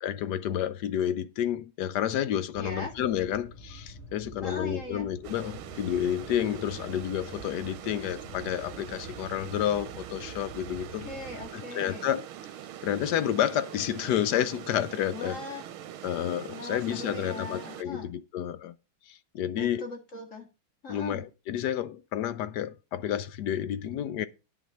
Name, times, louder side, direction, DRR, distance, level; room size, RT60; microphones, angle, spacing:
voice 1, 0.0-11.1 11.5-12.2 12.8-15.4 16.0-18.7 19.1-19.9 20.9-24.3, left 10 dB, 70° left, 1.1 m, -30 dB
sound 1, 2.5-11.5, equal, 5° left, 4.6 m, -47 dB
voice 2, 2.6-2.9 4.4-5.1 11.0-12.1 15.1-15.7 16.5-18.1 19.5-20.5 20.8-21.2, left 2 dB, 40° left, 2.1 m, -40 dB
sound 2, 5.2-17.8, right 11 dB, 90° right, 1.7 m, -43 dB
9.3 x 6.2 x 5.4 m
omnidirectional pair, 2.2 m